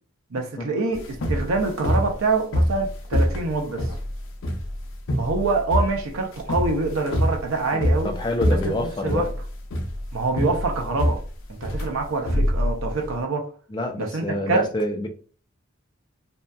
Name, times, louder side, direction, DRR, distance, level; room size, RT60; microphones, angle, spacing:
voice 1, 0.3-3.9 5.2-8.2 8.5-9.3 10.1-11.2 11.5-13.5 14.0-14.7, right 3 dB, 75° right, 0.5 m, -25 dB
sound 1, 0.9-13.2, equal, 70° left, 0.5 m, -25 dB
voice 2, 7.7-9.3 13.7-15.1, left 1 dB, 20° left, 0.3 m, -27 dB
2.6 x 2.2 x 2.2 m
head